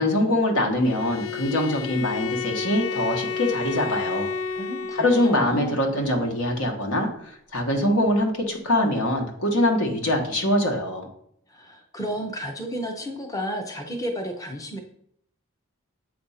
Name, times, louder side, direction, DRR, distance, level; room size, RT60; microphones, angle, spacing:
voice 1, 0.0-4.3 5.0-11.1, left 1 dB, 80° left, 2 dB, 1.3 m, -23 dB
Bowed string instrument, 0.8-5.5, left 6 dB, 65° left, 0.4 m, -31 dB
voice 2, 4.5-5.8 11.5-14.8, equal, 15° left, 3 dB, 0.6 m, -32 dB
7.6 x 2.6 x 5.6 m, 0.70 s
head